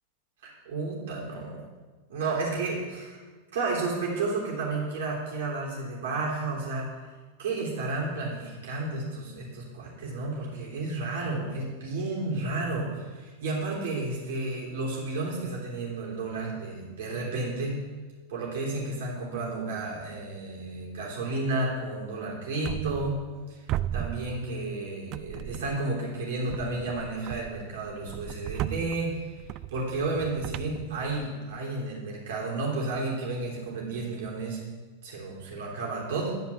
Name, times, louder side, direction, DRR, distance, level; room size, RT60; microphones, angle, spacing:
voice 1, 0.4-1.6 2.1-3.2 3.5-6.9 7.4-17.8 18.3-23.2 23.5-23.6 23.9-29.3 29.7-34.6 35.0-36.3, right 3 dB, 55° right, -4 dB, 3.5 m, -32 dB
sound 1, 22.6-23.4 23.7-24.8 25.1-25.9 26.5-31.6, right 12 dB, 40° right, 0.3 m, -36 dB
11.0 x 5.2 x 7.3 m, 1.3 s
figure-of-eight pair, 90°, 0 cm